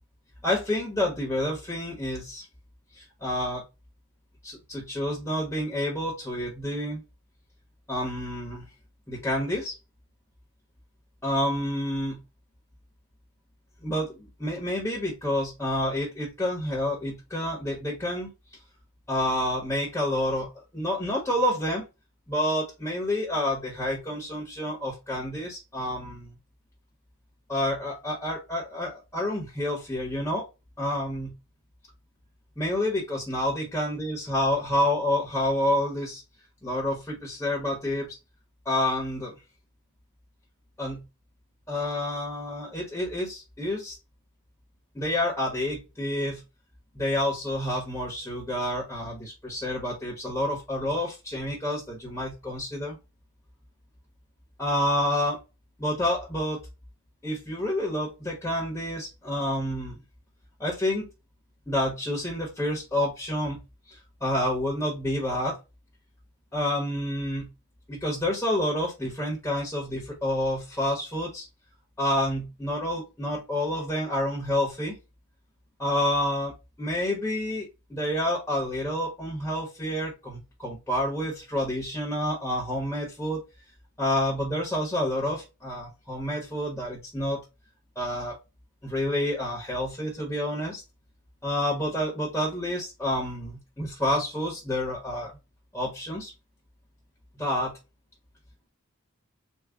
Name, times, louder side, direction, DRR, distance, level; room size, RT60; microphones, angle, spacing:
voice 1, 0.4-2.4 2.9-3.6 4.4-7.0 7.9-8.7 9.1-9.7 11.2-12.2 13.8-18.3 19.1-21.8 22.3-26.4 27.5-30.4 30.8-31.3 32.6-36.2 36.6-38.2 38.6-39.3 40.8-41.0 41.7-44.0 44.9-46.4 46.9-53.0 54.6-55.4 55.8-56.6 57.2-60.0 60.6-61.1 61.7-63.6 63.9-65.6 66.5-67.5 67.9-71.5 72.0-74.9 75.8-76.5 76.8-83.4 84.0-87.4 88.0-88.4 88.8-90.8 91.4-95.4 95.7-96.3 97.4-97.8, left 1 dB, 10° left, -2 dB, 1.1 m, -29 dB
3.7 x 2.3 x 3.3 m, 0.26 s
head